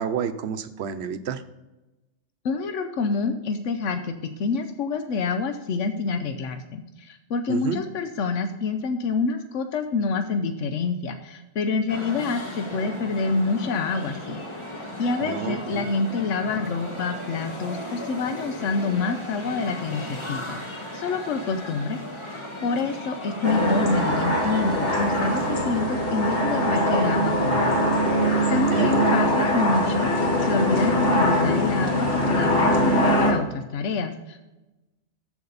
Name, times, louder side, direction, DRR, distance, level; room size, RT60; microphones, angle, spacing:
voice 1, 0.0-1.4 7.5-7.8 15.2-15.9 28.5-29.1, right 7 dB, 65° right, 11 dB, 0.9 m, -29 dB
voice 2, 2.4-14.4 15.0-20.6 20.9-22.0 22.6-27.7 28.5-34.4, left 4 dB, 90° left, 7 dB, 1.1 m, -27 dB
Tokyo Street, 11.9-25.7, left 1 dB, 25° left, 1.4 m, -36 dB
sound 1, 23.4-33.3, equal, 50° left, 1.9 m, -22 dB
13.5 x 5.0 x 4.0 m, 1.0 s
omnidirectional pair, 1.2 m